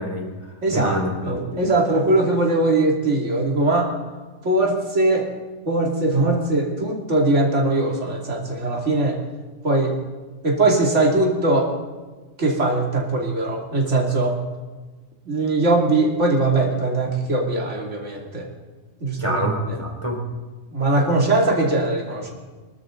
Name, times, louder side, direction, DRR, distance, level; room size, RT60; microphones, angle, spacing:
voice 1, 0.0-1.6 19.2-20.2, equal, 20° right, 1 dB, 3.5 m, -27 dB
voice 2, 0.6-0.9 1.3-3.9 4.4-5.3 5.6-9.2 9.6-9.9 10.4-11.7 12.4-14.4 15.3-18.5 19.0-19.4 20.7-22.3, right 2 dB, 60° right, -1 dB, 3.0 m, -20 dB
25.5 x 13.0 x 3.9 m, 1.3 s
omnidirectional pair, 1.4 m